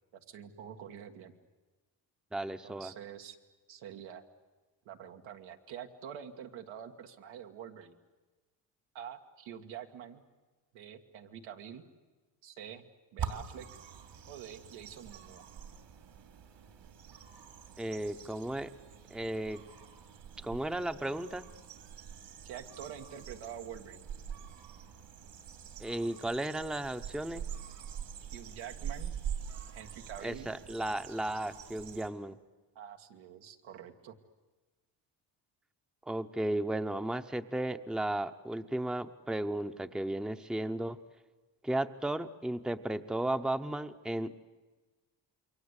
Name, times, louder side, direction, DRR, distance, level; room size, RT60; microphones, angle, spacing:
voice 1, 0.1-1.3 2.6-3.4 3.7-4.3 4.9-8.0 8.9-10.2 10.7-11.8 12.4-12.9 13.1-13.7 14.3-15.5 22.4-24.1 28.3-29.1 29.7-30.5 32.8-34.2, right 9 dB, 85° right, 4 dB, 2.0 m, -46 dB
voice 2, 2.3-2.9 17.8-18.7 19.1-19.6 20.4-21.5 25.8-27.5 30.2-32.4 36.1-41.0 41.6-44.4, right 1 dB, ahead, 9 dB, 0.9 m, -34 dB
sound 1, 13.2-32.1, right 8 dB, 65° right, 3.0 m, -44 dB
28.0 x 23.0 x 8.2 m, 1.3 s
cardioid pair, 90°, 45 cm